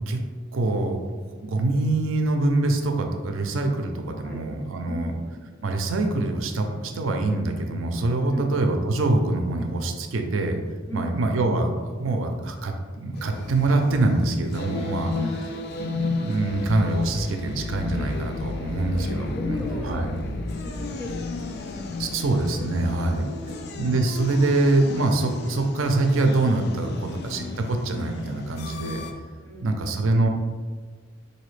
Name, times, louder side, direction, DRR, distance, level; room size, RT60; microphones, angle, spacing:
voice 1, 0.5-1.0 1.4-5.1 5.6-10.6 10.9-15.1 15.8-20.2 22.0-23.3 23.8-29.0 29.6-30.3, right 2 dB, 85° right, 5 dB, 0.4 m, -24 dB
voice 2, 4.9-5.2 8.2-8.6 10.9-11.5 15.2-15.7 18.8-22.3 23.1-23.8 26.9-27.3 29.4-30.3, left 1 dB, 15° left, -3 dB, 0.6 m, -38 dB
sound 1, 13.1-29.1, left 3 dB, 55° left, 0.3 m, -33 dB
4.0 x 2.7 x 3.2 m, 1.5 s
head